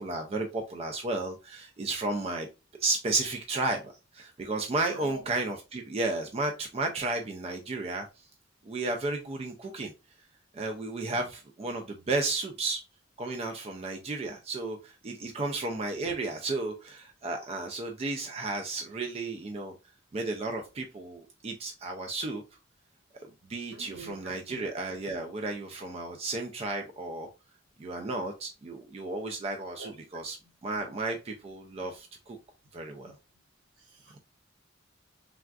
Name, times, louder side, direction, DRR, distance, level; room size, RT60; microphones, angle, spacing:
voice 1, 0.0-2.5 2.8-8.1 8.6-9.9 10.5-12.8 13.2-19.7 20.1-22.4 23.5-27.3 27.8-32.4 32.7-33.1, right 2 dB, 30° right, 0.3 m, -33 dB
voice 2, 4.9-5.2 11.1-11.2 23.7-24.6 29.8-29.9 33.9-34.2, right 2 dB, 75° right, 1.0 m, -45 dB
3.4 x 2.3 x 2.3 m
head